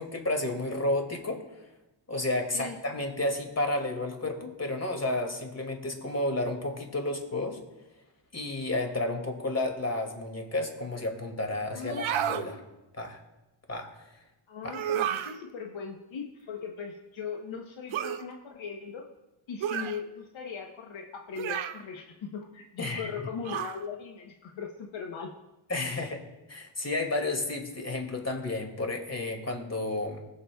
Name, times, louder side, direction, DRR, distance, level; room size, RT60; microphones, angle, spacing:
voice 1, 0.0-1.4 2.1-7.6 8.3-12.6 12.9-13.2 13.7-13.9 14.6-14.7 22.8-23.3 25.7-26.2 26.5-30.2, left 2 dB, 35° left, 3 dB, 2.3 m, -31 dB
voice 2, 11.7-12.6 14.5-19.1 19.5-25.3 25.8-26.1, left 6 dB, 75° left, 2 dB, 1.0 m, -39 dB
sound 1, 11.8-12.5 14.7-15.4 17.9-18.2 19.6-20.0 21.4-21.8 23.4-23.8, right 10 dB, 85° right, 0.7 m, -31 dB
20.0 x 7.0 x 2.3 m, 1.0 s
cardioid pair, 70°, 47 cm